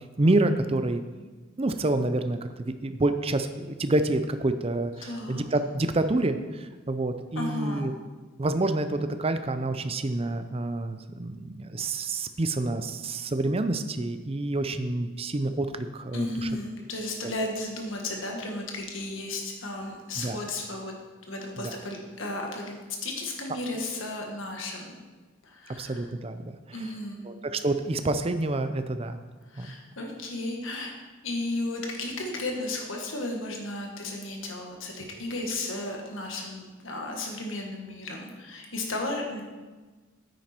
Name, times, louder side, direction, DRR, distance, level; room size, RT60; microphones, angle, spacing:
voice 1, 0.2-1.0 1.6-7.9 8.4-16.5 17.2-17.3 20.2-20.4 21.6-21.7 25.8-26.5 27.3-29.2 29.6-29.7, right 2 dB, 30° right, 9 dB, 0.6 m, -28 dB
voice 2, 5.0-5.4 7.4-7.9 16.1-20.9 21.3-25.0 25.4-26.1 26.7-27.2 29.5-30.9 31.2-39.4, left 2 dB, 65° left, 1 dB, 1.8 m, -34 dB
9.4 x 9.2 x 4.5 m, 1.3 s
head